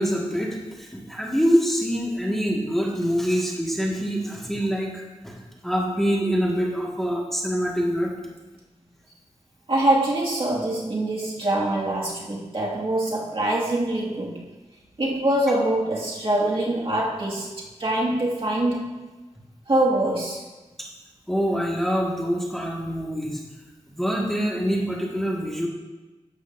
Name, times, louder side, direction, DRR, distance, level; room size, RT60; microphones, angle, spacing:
voice 1, 0.0-5.4 5.6-8.1 20.8-20.9 21.3-23.4 23.9-25.7, equal, ahead, -4 dB, 1.8 m, -25 dB
voice 2, 9.7-14.5 15.0-19.0 19.7-20.4, right 1 dB, 50° right, -5 dB, 2.1 m, -24 dB
12.5 x 8.1 x 2.7 m, 1.2 s
wide cardioid pair, 75°, 12 cm